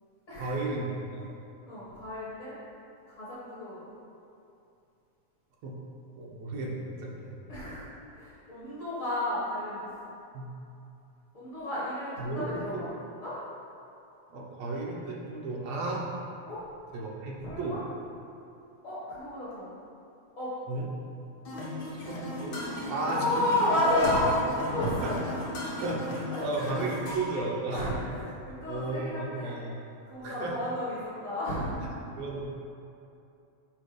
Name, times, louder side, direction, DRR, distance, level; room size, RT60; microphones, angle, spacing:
voice 1, 0.4-1.3 5.6-5.7 6.2-7.4 10.3-10.5 12.2-12.8 14.3-16.1 16.9-17.8 20.7-20.9 22.1-22.6 22.9-23.7 25.0-25.1 25.8-27.9 28.7-29.8 30.2-30.6 32.2-32.4, right 2 dB, 70° right, -3 dB, 2.0 m, -34 dB
voice 2, 1.7-2.5 3.1-3.9 7.5-7.9 8.1-9.9 11.3-12.9 13.2-13.4 16.5-16.6 17.4-17.8 18.8-19.7 20.4-20.5 23.1-25.2 26.3-26.7 27.7-29.6 30.0-31.9, left 1 dB, 35° left, -10 dB, 1.5 m, -31 dB
sound 1, 21.4-27.4, left 1 dB, 55° left, 1.6 m, -37 dB
8.5 x 3.4 x 4.9 m, 2.7 s
omnidirectional pair, 3.3 m